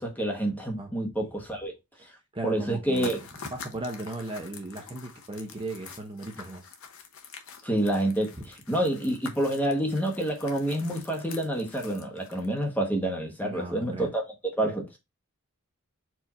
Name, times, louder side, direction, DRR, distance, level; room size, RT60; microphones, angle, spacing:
voice 1, 0.0-1.7 2.4-3.2 7.6-8.3 8.7-14.2 14.6-15.0, right 1 dB, 10° left, 1.0 m, -28 dB
voice 2, 2.0-6.7 8.4-8.5 13.4-14.1, right 2 dB, 25° right, 0.7 m, -37 dB
sound 1, 2.9-12.6, left 5 dB, 65° left, 0.8 m, -46 dB
4.6 x 2.5 x 4.1 m
head